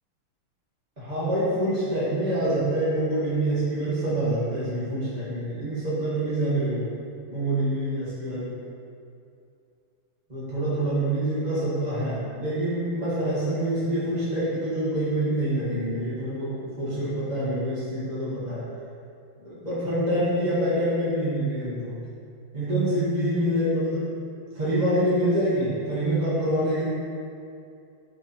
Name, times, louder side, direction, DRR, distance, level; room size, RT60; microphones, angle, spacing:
voice 1, 1.0-6.9 7.3-8.6 10.3-18.7 19.4-22.0 22.5-24.1 24.5-26.9, right 1 dB, 20° right, -11 dB, 1.5 m, -26 dB
9.4 x 3.6 x 4.4 m, 2.5 s
omnidirectional pair, 2.4 m